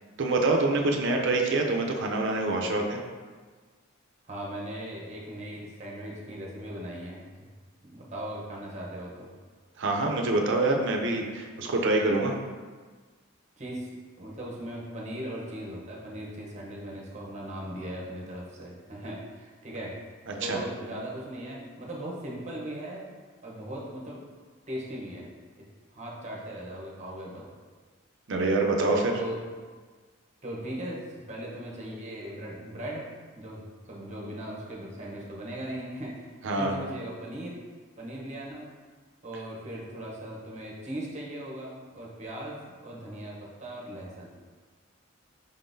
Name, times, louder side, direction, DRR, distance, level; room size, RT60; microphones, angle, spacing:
voice 1, 0.2-3.0 9.8-12.4 20.3-20.6 28.3-29.2 36.4-36.7, right 2 dB, 55° right, 2 dB, 0.5 m, -26 dB
voice 2, 4.3-7.2 7.8-9.3 13.6-13.9 14.2-19.9 20.4-23.1 23.4-24.2 24.7-25.3 25.6-25.7 25.9-27.5 29.1-29.4 30.4-33.1 33.3-37.6 38.0-38.7 39.2-44.4, right 1 dB, 30° right, -3 dB, 0.8 m, -38 dB
5.3 x 3.7 x 2.6 m, 1.5 s
head